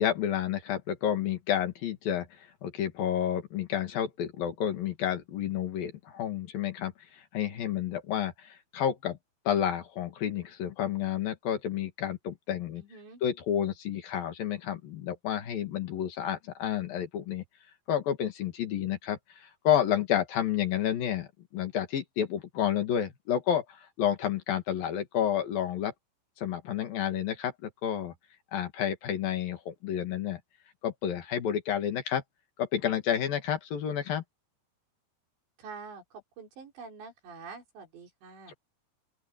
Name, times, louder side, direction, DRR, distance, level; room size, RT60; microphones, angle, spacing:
voice 1, 0.0-2.3 2.6-6.9 7.3-9.2 9.4-12.8 13.2-17.4 17.9-25.9 26.4-28.1 28.5-30.4 30.8-32.2 32.6-34.2 38.5-38.6, left 10 dB, 60° left, 3.5 m, -30 dB
voice 2, 12.8-13.2 35.6-36.0 36.4-38.5, right 5 dB, 80° right, 7.3 m, -46 dB
open air
omnidirectional pair, 5.0 m